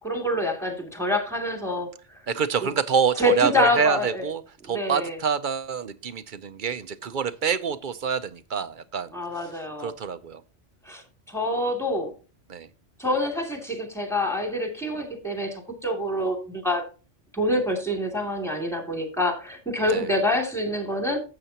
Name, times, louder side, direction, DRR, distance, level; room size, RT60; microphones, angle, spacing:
voice 1, 0.0-1.9 3.2-4.2 4.7-5.2 9.1-9.9 10.9-12.1 13.0-16.8 17.3-21.2, left 1 dB, ahead, 3 dB, 2.6 m, -26 dB
voice 2, 2.3-9.5 9.8-10.4 12.5-12.7 19.9-20.1, right 6 dB, 50° right, 12 dB, 0.7 m, -27 dB
12.0 x 7.9 x 2.9 m, 0.33 s
omnidirectional pair, 1.2 m